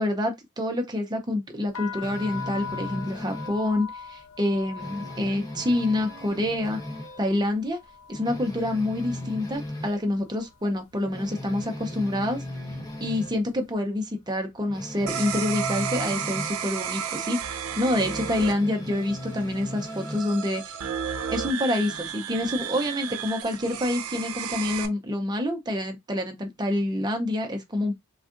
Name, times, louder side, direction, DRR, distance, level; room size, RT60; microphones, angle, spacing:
voice 1, 0.0-6.8 7.2-7.8 8.1-12.4 13.0-20.8 21.3-28.0, left 1 dB, 20° right, 0.6 m, -27 dB
sound 1, 1.7-9.6 9.9-10.5 11.2-11.5 11.7-13.2, left 6 dB, 70° left, 0.4 m, -41 dB
sound 2, 2.0-3.6 4.0-4.2 4.5-7.3 7.6-7.7 8.1-10.0 10.5-10.6 11.0-13.4 14.7-16.6 17.9-20.3, left 1 dB, 15° left, 0.7 m, -37 dB
sound 3, 15.1-24.9, right 8 dB, 90° right, 0.5 m, -33 dB
3.5 x 2.4 x 2.5 m
head